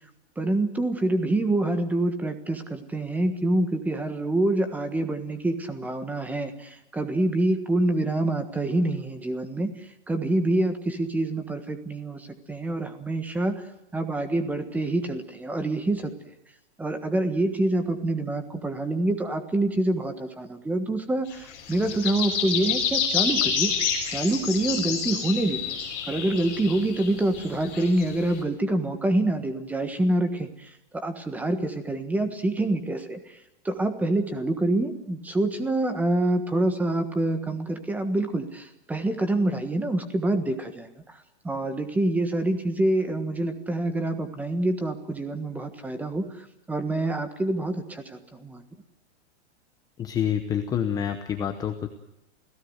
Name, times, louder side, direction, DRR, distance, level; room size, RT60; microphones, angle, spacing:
voice 1, 0.4-9.7 10.1-13.6 13.9-16.1 16.8-23.7 24.1-25.8 26.1-33.4 33.6-41.2 41.4-48.6, right 2 dB, 5° right, 8 dB, 1.4 m, -26 dB
sound 1, 21.3-28.3, left 7 dB, 30° left, 6.6 m, -28 dB
voice 2, 50.0-51.9, left 9 dB, 10° left, 7 dB, 0.8 m, -27 dB
28.5 x 17.0 x 7.9 m, 0.87 s
supercardioid pair, 170°, 34 cm